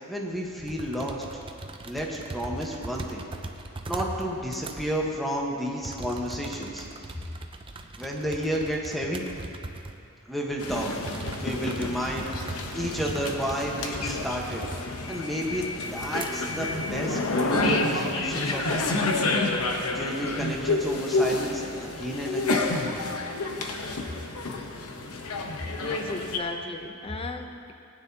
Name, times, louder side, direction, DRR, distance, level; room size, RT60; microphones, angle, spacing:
voice 1, 0.1-1.2 1.8-3.2 3.8-6.8 8.0-9.2 10.3-10.9 11.4-12.5 12.7-14.6 15.1-18.9 19.9-22.6, equal, ahead, -2 dB, 1.2 m, -31 dB
sound 1, 0.7-4.2 4.5-4.8 5.8-10.0 10.4-10.5 11.1-15.1 15.5-15.6 16.0-16.3, right 2 dB, 25° right, 0.6 m, -40 dB
sound 2, 10.6-26.4, left 2 dB, 85° left, 1.0 m, -29 dB
voice 2, 25.8-27.7, left 2 dB, 25° left, 6 dB, 0.6 m, -34 dB
19.0 x 9.8 x 2.8 m, 2.6 s
head